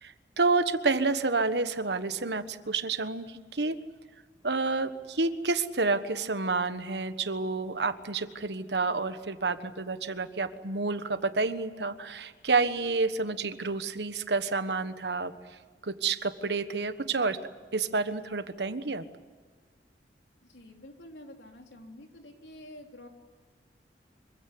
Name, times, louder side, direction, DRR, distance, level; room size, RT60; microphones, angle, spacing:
voice 1, 0.0-3.8 4.4-15.3 15.8-17.4 17.7-19.0, right 3 dB, 75° right, 11 dB, 1.3 m, -29 dB
voice 2, 20.5-23.1, left 1 dB, 85° left, 3 dB, 3.6 m, -48 dB
25.5 x 16.0 x 9.8 m, 1.5 s
head